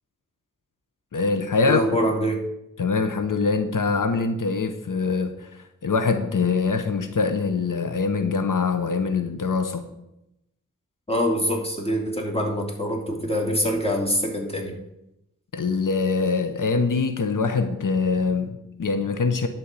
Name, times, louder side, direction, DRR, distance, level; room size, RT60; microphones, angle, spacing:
voice 1, 1.1-1.8 2.8-9.8 15.5-19.5, left 4 dB, 85° left, 8 dB, 0.9 m, -24 dB
voice 2, 1.7-2.4 11.1-14.8, equal, 20° left, 1 dB, 2.8 m, -24 dB
11.5 x 4.5 x 8.2 m, 0.87 s
cardioid pair, 40°, 31 cm